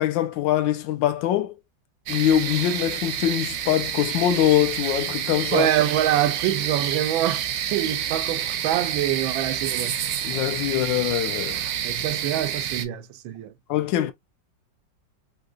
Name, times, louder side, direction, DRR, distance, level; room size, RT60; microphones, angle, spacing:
voice 1, 0.0-1.5 2.1-5.7 10.2-11.6 13.7-14.1, left 12 dB, 80° left, 1.3 m, -23 dB
sound 1, 2.1-12.8, right 9 dB, 70° right, 0.9 m, -29 dB
voice 2, 5.5-10.0 11.8-13.5, right 12 dB, 90° right, 1.4 m, -25 dB
3.8 x 2.8 x 2.3 m
omnidirectional pair, 2.1 m